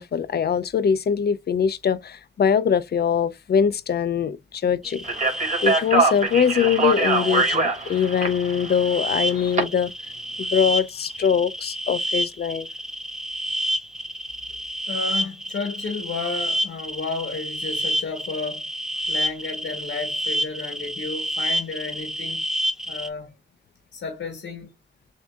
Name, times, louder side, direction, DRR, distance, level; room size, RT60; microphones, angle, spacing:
voice 1, 0.0-5.0 5.6-9.9 10.4-12.7, left 7 dB, 55° left, 0.5 m, -22 dB
sound 1, 4.8-23.1, equal, 5° right, 0.5 m, -29 dB
Speech, 5.0-9.6, right 3 dB, 40° right, 1.6 m, -23 dB
voice 2, 14.9-18.6 19.1-22.4 22.9-23.3 23.9-24.7, left 4 dB, 90° left, 1.4 m, -32 dB
7.2 x 2.6 x 2.3 m
wide cardioid pair, 130°, 19 cm